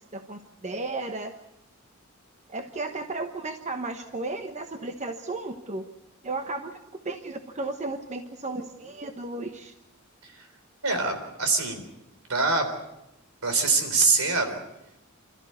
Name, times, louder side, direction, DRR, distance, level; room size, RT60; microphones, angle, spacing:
voice 1, 0.1-1.3 2.5-5.8 6.2-6.8 7.0-9.7, right 2 dB, 35° right, 6 dB, 1.1 m, -34 dB
voice 2, 10.8-11.8 12.3-12.7 13.4-14.6, right 4 dB, 75° right, 6 dB, 3.9 m, -24 dB
28.0 x 14.0 x 8.1 m, 0.90 s
head